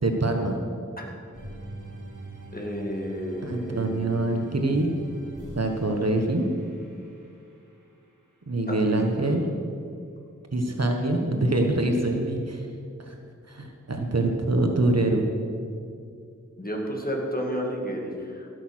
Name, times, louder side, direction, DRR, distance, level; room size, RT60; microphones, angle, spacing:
voice 1, 0.0-0.6 3.4-4.9 5.5-6.5 8.5-9.5 10.5-12.7 13.1-13.2 13.5-15.2, right 2 dB, 55° right, 3 dB, 1.4 m, -24 dB
sound 1, 1.3-7.7, right 1 dB, 80° right, 2.2 m, -42 dB
voice 2, 2.5-4.5 8.7-9.2 16.6-18.5, equal, 30° left, 0 dB, 2.2 m, -32 dB
16.5 x 6.6 x 6.3 m, 2.4 s
wide cardioid pair, 50°, 30 cm